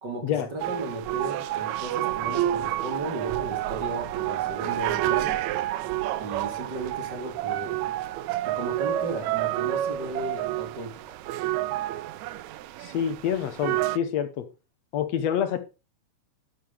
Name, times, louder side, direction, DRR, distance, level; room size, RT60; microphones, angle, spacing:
voice 1, 0.0-5.4 6.2-7.9 8.4-11.2, right 2 dB, 35° right, 2.7 m, -35 dB
sound 1, 0.6-14.0, right 14 dB, 75° right, 1.8 m, -29 dB
voice 2, 12.8-14.5 14.9-15.6, left 9 dB, 65° left, 2.1 m, -27 dB
12.0 x 9.4 x 3.5 m
omnidirectional pair, 3.5 m